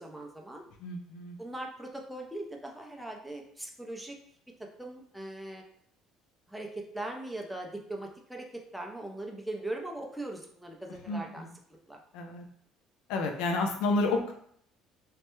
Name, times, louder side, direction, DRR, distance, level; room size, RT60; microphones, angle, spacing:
voice 1, 0.0-0.6 1.4-4.2 4.6-5.6 6.5-11.5 11.9-12.0, right 1 dB, ahead, 0 dB, 0.4 m, -40 dB
voice 2, 0.8-1.4 11.1-11.5 12.1-12.4 13.1-14.3, left 3 dB, 90° left, 3 dB, 0.5 m, -30 dB
3.2 x 2.1 x 3.0 m, 0.64 s
cardioid pair, 140°, 0 cm